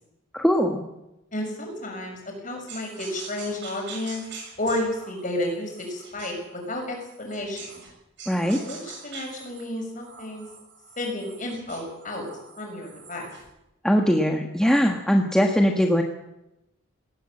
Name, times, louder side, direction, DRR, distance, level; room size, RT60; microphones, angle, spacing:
voice 1, 0.3-0.8 8.3-8.6 13.8-16.0, equal, 5° left, 2 dB, 1.4 m, -21 dB
voice 2, 1.3-4.3 4.6-7.8 8.6-10.5 11.0-12.2 12.6-13.3, left 1 dB, 40° left, 2 dB, 6.3 m, -32 dB
sound 1, 2.7-7.9 8.2-13.5, right 5 dB, 60° right, 7.2 m, -44 dB
19.0 x 18.0 x 7.7 m, 0.92 s
head